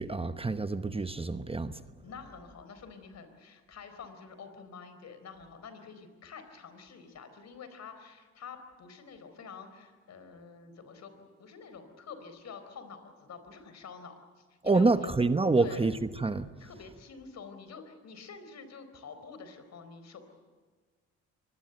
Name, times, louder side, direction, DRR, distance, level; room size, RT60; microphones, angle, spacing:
voice 1, 0.0-1.8 14.6-15.9 16.2-16.5, right 3 dB, 20° right, 1.0 m, -27 dB
voice 2, 2.0-15.1 15.6-15.9 16.6-20.2, left 5 dB, 60° left, 4.3 m, -48 dB
24.5 x 20.5 x 8.0 m
cardioid pair, 90°, 30 cm